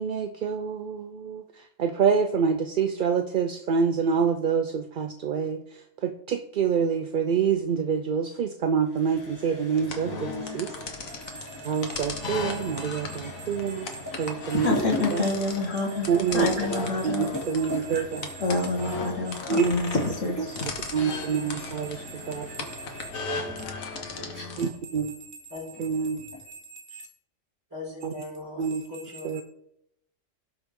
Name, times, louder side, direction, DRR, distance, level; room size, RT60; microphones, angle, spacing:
voice 1, 0.0-1.4 1.8-5.6 6.0-10.7 11.6-13.9 14.2-14.7 15.1-15.2 16.1-16.6 17.0-18.3 19.5-19.7 20.9-23.1 24.6-25.1 25.8-27.0 28.0-28.1 28.6-28.8 29.2-29.4, right 6 dB, 55° right, 0.6 m, -27 dB
sound 1, 8.8-26.5, left 1 dB, 15° left, 2.8 m, -40 dB
sound 2, 9.8-24.7, left 3 dB, 85° left, 1.7 m, -37 dB
voice 2, 14.5-17.3 18.4-20.6, left 3 dB, 65° left, 2.2 m, -27 dB
voice 3, 24.0-24.8 25.5-25.6 27.7-29.3, left 2 dB, 15° right, 4.8 m, -40 dB
17.0 x 6.0 x 3.6 m
omnidirectional pair, 1.4 m